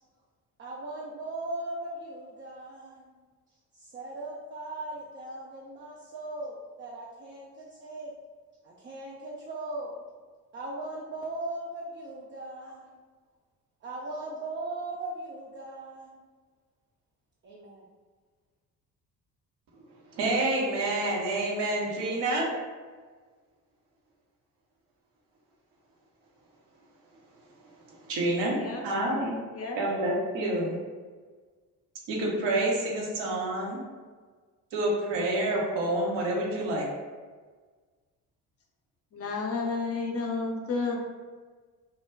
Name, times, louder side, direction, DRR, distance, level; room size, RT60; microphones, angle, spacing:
voice 1, 0.6-3.2 3.8-8.1 8.6-10.0 10.5-13.0 13.8-16.3 17.4-17.8, right 2 dB, 25° right, -4 dB, 0.4 m, -38 dB
voice 2, 20.1-22.5 27.9-29.4 29.7-30.8 32.1-33.8 34.7-36.9, right 1 dB, 60° right, -3 dB, 0.8 m, -28 dB
voice 3, 28.6-29.2 29.5-29.8 39.1-41.0, left 4 dB, 30° left, 0 dB, 0.5 m, -32 dB
2.3 x 2.1 x 3.3 m, 1.5 s
figure-of-eight pair, 45°, 49 cm